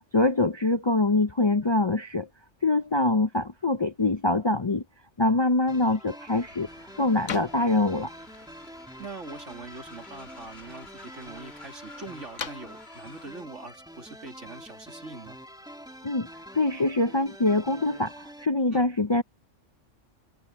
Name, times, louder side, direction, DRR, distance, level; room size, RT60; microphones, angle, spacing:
voice 1, 0.1-2.3 2.6-4.8 5.2-6.7 7.0-8.1 16.0-16.3 16.5-19.2, left 2 dB, 30° left, 0.5 m, -24 dB
sound 1, 5.6-14.8, left 6 dB, 90° left, 1.6 m, -45 dB
sound 2, 5.7-18.5, equal, 5° right, 2.2 m, -46 dB
Train, 6.4-13.4, left 3 dB, 55° left, 2.6 m, -51 dB
voice 2, 9.0-15.4 18.7-18.9, right 3 dB, 75° right, 3.4 m, -43 dB
omnidirectional pair, 1.2 m